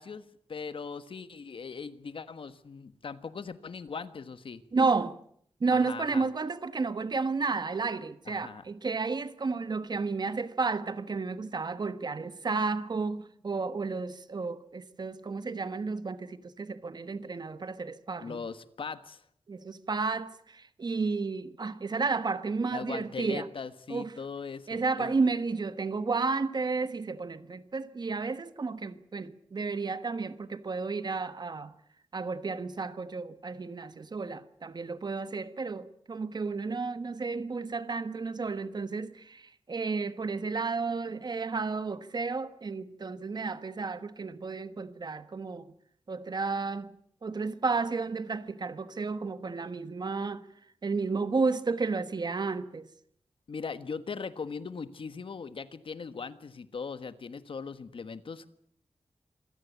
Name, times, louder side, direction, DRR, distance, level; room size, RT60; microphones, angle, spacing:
voice 1, 0.0-4.6 5.7-6.2 8.3-8.6 18.2-19.2 22.7-25.1 53.5-58.5, left 5 dB, 60° left, 1.4 m, -40 dB
voice 2, 4.7-5.2 5.6-18.4 19.5-23.5 23.9-24.1 24.7-31.7 32.1-45.7 46.1-46.9 47.2-50.5 50.8-52.9, right 4 dB, 45° right, 1.3 m, -32 dB
26.0 x 17.0 x 8.2 m
wide cardioid pair, 145°, 10 cm